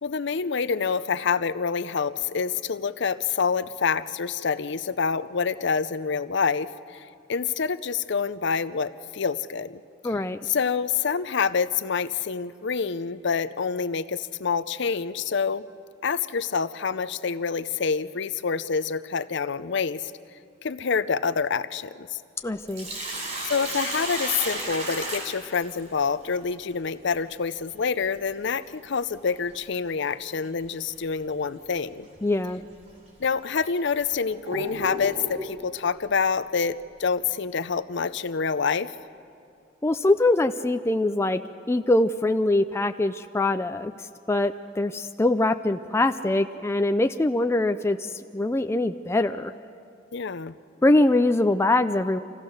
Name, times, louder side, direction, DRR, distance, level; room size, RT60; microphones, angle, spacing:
voice 1, 0.0-10.1 10.4-15.7 16.0-20.1 20.6-22.2 23.4-32.1 33.2-38.9 50.1-50.6, left 5 dB, 65° left, 14 dB, 0.6 m, -27 dB
voice 2, 10.0-10.4 22.4-22.9 32.2-32.6 39.8-41.4 41.7-43.9 44.3-49.5 50.8-52.2, left 2 dB, 15° left, 8 dB, 0.4 m, -23 dB
Sink (filling or washing), 22.5-26.1 28.5-28.6 30.4-30.7 31.1-31.2 32.0-32.2 32.9-33.0 33.6-35.5, right 1 dB, 40° right, 4.9 m, -33 dB
27.0 x 16.0 x 6.5 m, 2.4 s
head